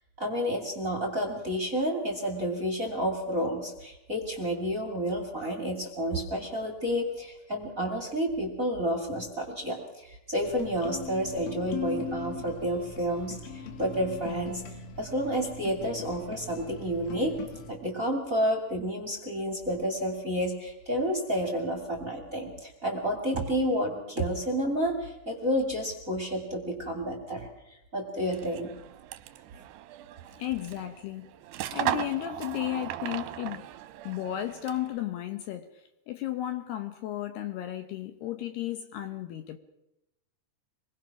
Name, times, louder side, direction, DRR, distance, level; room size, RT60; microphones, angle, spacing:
voice 1, 0.2-14.6 15.0-17.4 17.7-28.7, equal, 25° right, 3 dB, 2.3 m, -30 dB
sound 1, 10.5-17.7, left 5 dB, 90° left, 4.8 m, -40 dB
sound 2, 28.2-35.0, right 13 dB, 75° right, 2.7 m, -37 dB
voice 2, 30.4-31.3 31.7-33.7 34.0-39.6, left 13 dB, 70° left, 9 dB, 2.7 m, -34 dB
26.0 x 21.5 x 6.0 m, 0.89 s
omnidirectional pair, 5.4 m